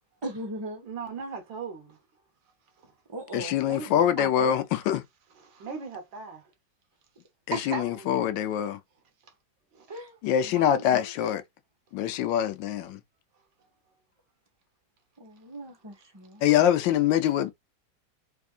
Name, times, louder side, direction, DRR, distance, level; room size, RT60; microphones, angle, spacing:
voice 1, 0.2-0.9 3.1-3.6 3.9-4.6 7.5-8.4 9.9-10.2 10.4-11.4 15.2-16.4, right 2 dB, 20° right, 0.7 m, -38 dB
voice 2, 0.9-2.0 2.8-2.9 3.6-3.9 5.4-6.5 9.2-9.3 9.7-9.9, right 5 dB, 85° right, 1.9 m, -39 dB
voice 3, 3.3-5.0 7.5-8.8 10.2-11.4 11.9-13.0 16.4-17.5, left 10 dB, 80° left, 1.3 m, -24 dB
3.6 x 3.4 x 2.4 m
omnidirectional pair, 2.0 m